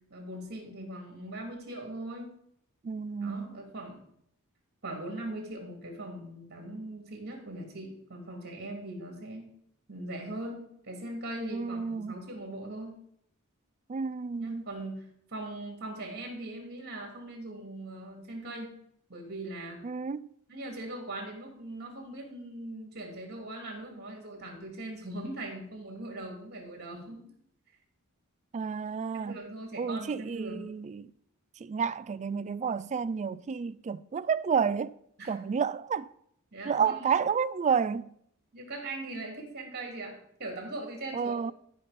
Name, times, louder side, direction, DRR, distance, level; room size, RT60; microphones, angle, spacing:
voice 1, 0.1-2.3 3.2-4.0 4.8-9.5 9.9-13.0 14.4-18.7 19.1-19.8 20.5-27.2 29.1-30.6 35.2-35.4 36.5-37.1 38.5-41.5, right 1 dB, 50° right, 3.1 m, -40 dB
voice 2, 2.8-3.6 11.5-12.2 13.9-14.7 19.8-20.3 28.5-29.4 29.8-31.1 31.6-35.0 35.3-36.1 36.6-38.1 41.1-41.5, right 6 dB, 30° right, 0.3 m, -30 dB
12.5 x 5.6 x 5.2 m
head